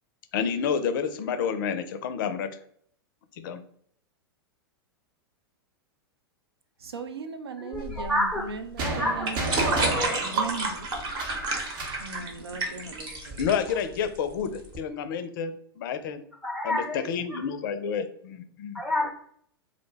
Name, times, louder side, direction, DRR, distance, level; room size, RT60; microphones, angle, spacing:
voice 1, 0.3-2.6 3.4-3.6 13.4-16.2 16.6-18.8, left 7 dB, 55° left, 0.4 m, -29 dB
voice 2, 6.8-9.5 9.8-10.9 12.0-13.4, right 4 dB, 80° right, 0.4 m, -38 dB
voice 3, 7.6-8.5 8.8-10.5 16.4-17.4 18.7-19.1, left 1 dB, ahead, 0.5 m, -30 dB
sound 1, 7.7-14.8, right 3 dB, 35° right, 0.9 m, -31 dB
sound 2, 8.8-12.1, right 2 dB, 60° right, 0.8 m, -32 dB
2.4 x 2.1 x 3.2 m
figure-of-eight pair, 100°, 13 cm